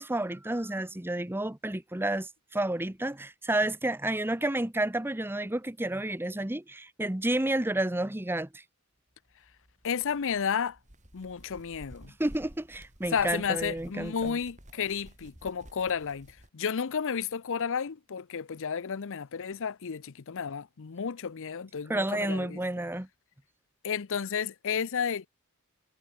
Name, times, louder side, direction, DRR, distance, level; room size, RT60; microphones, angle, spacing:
voice 1, 0.0-8.6 12.2-14.4 21.9-23.1, right 1 dB, 10° right, 0.9 m, -30 dB
sound 1, 9.3-16.5, equal, 35° right, 5.4 m, -53 dB
voice 2, 9.8-10.8 11.1-12.1 13.1-16.3 16.5-22.6 23.8-25.3, left 6 dB, 60° left, 0.6 m, -32 dB
head